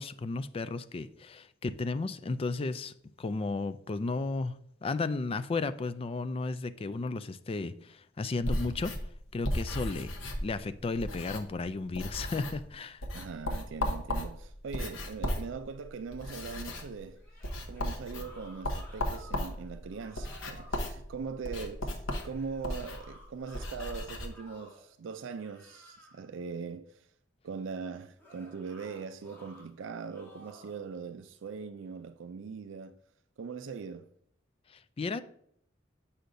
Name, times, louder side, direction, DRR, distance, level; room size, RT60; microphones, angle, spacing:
voice 1, 0.0-2.9 3.2-4.5 4.8-8.9 9.3-10.1 10.4-13.0 34.7-35.2, left 3 dB, 30° left, 0.3 m, -34 dB
sound 1, 8.4-11.7 11.9-12.7 13.0-24.3, left 1 dB, 85° left, 1.0 m, -36 dB
voice 2, 13.1-17.2 17.7-27.1 27.4-33.0 33.4-34.1, right 5 dB, 70° right, 0.4 m, -41 dB
sound 2, 17.1-19.6 19.9-20.8 22.2-24.9 25.3-26.3 28.2-29.7 30.1-30.8, equal, 10° left, 2.2 m, -55 dB
8.1 x 5.7 x 2.6 m
head